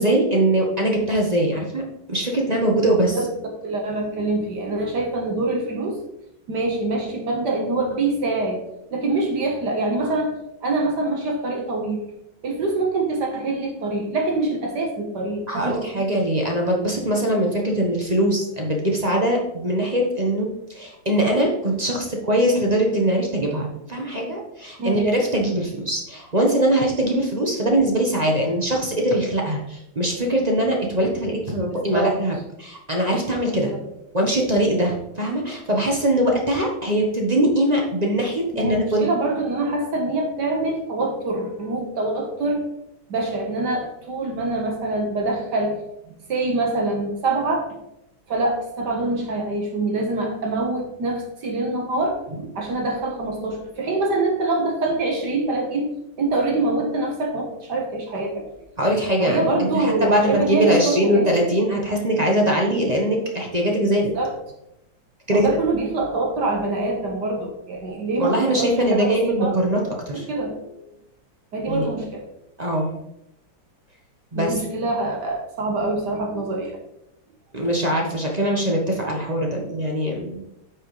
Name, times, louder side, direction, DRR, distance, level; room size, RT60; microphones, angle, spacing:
voice 1, 0.0-1.8 2.1-3.2 15.5-33.7 34.1-39.1 52.3-52.4 58.8-64.1 65.3-65.5 68.2-69.8 70.1-70.3 71.7-71.9 72.6-72.9 74.3-74.6 77.5-80.4, right 1 dB, 25° right, 0 dB, 0.9 m, -22 dB
voice 2, 3.6-6.0 6.5-8.6 8.9-10.3 10.6-12.0 12.4-16.0 24.8-25.1 31.7-32.2 33.5-33.8 38.5-42.6 43.1-45.8 46.0-47.7 48.3-52.2 52.5-55.9 56.2-58.4 59.2-61.3 64.1-64.3 65.3-69.5 70.1-70.6 71.5-72.2 74.3-76.8, right 2 dB, 60° right, 1 dB, 1.8 m, -25 dB
8.9 x 6.2 x 3.2 m, 0.82 s
omnidirectional pair, 2.1 m